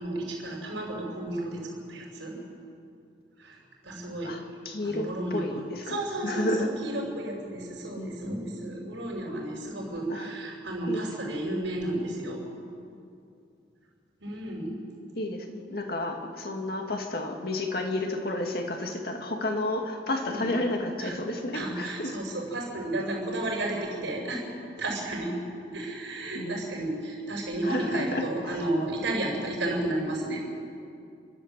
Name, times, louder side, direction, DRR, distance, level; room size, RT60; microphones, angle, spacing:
voice 1, 0.0-2.4 3.4-4.4 4.8-5.6 5.9-12.4 14.2-14.8 20.3-20.5 21.0-21.2 21.5-24.4 24.8-25.4 25.7-30.4, right 1 dB, 85° right, -2 dB, 5.7 m, -32 dB
voice 2, 4.2-6.7 8.0-8.2 10.1-10.3 10.9-11.0 15.2-22.1 26.3-26.8 27.6-28.6, left 1 dB, 55° left, 3 dB, 2.4 m, -31 dB
30.0 x 12.5 x 7.7 m, 2.5 s
head